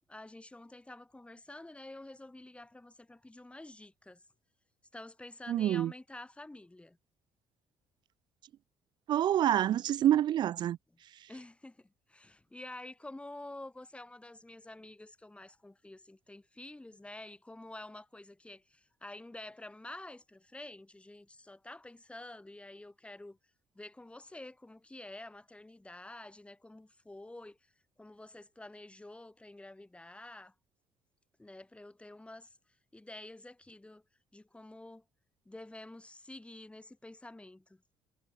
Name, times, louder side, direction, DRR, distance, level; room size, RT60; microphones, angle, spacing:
voice 1, 0.1-4.2 4.9-7.0 11.3-23.4 23.7-27.6 28.0-30.5 31.4-32.5 32.9-34.0 34.3-35.0 35.5-37.8, left 2 dB, 10° left, 2.7 m, -49 dB
voice 2, 5.5-5.9 9.1-10.8, right 11 dB, 55° right, 0.3 m, -27 dB
hypercardioid pair, 60°, 9 cm